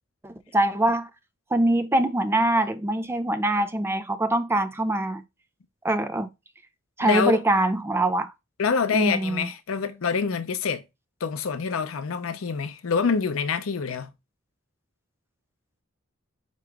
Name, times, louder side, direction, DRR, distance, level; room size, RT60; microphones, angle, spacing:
voice 1, 0.2-1.1 1.5-5.2 5.8-6.3 7.0-8.3 8.9-9.5, right 1 dB, 10° right, 0.4 m, -23 dB
voice 2, 7.0-7.3 8.6-10.8 11.2-14.1, left 6 dB, 85° left, 0.6 m, -26 dB
4.7 x 3.0 x 3.4 m
head